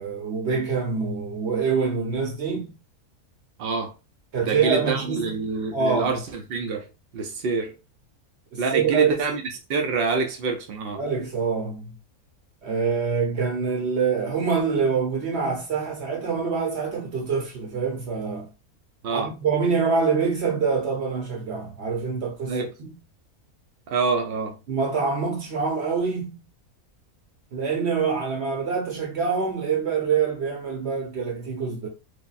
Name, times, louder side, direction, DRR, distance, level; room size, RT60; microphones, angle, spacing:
voice 1, 0.0-2.8 4.3-5.4 5.7-6.2 8.5-9.2 10.9-11.9 12.6-18.5 19.1-22.9 24.7-26.4 27.5-31.9, right 5 dB, 60° right, 0.8 m, -25 dB
voice 2, 3.6-3.9 4.4-6.9 7.1-7.8 8.6-9.4 9.7-11.0 19.0-19.3 22.5-22.7 23.9-24.6, right 4 dB, 80° right, 0.5 m, -26 dB
3.4 x 2.1 x 2.3 m
omnidirectional pair, 1.6 m